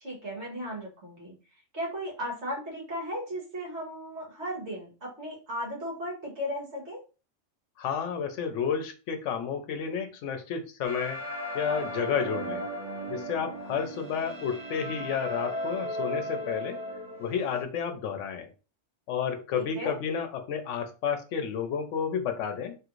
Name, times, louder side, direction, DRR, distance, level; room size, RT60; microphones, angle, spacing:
voice 1, 0.0-1.3 1.7-7.0 19.6-20.0, equal, 65° right, -3 dB, 1.5 m, -36 dB
voice 2, 7.8-11.2 11.5-12.6 13.1-16.8 17.2-18.5 19.1-22.8, left 7 dB, 85° left, 7 dB, 0.9 m, -31 dB
sound 1, 10.8-17.6, equal, 35° right, 0.9 m, -36 dB
3.0 x 2.5 x 3.0 m, 0.33 s
omnidirectional pair, 1.2 m